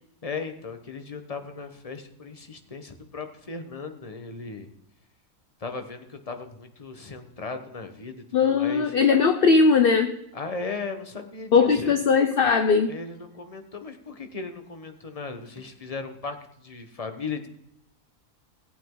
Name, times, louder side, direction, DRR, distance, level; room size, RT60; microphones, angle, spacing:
voice 1, 0.2-4.7 5.6-8.9 10.3-12.0 12.9-17.5, left 4 dB, 25° left, 7 dB, 1.1 m, -37 dB
voice 2, 8.3-10.2 11.5-12.9, left 5 dB, 50° left, 7 dB, 0.7 m, -19 dB
17.5 x 8.6 x 3.9 m, 0.77 s
omnidirectional pair, 1.7 m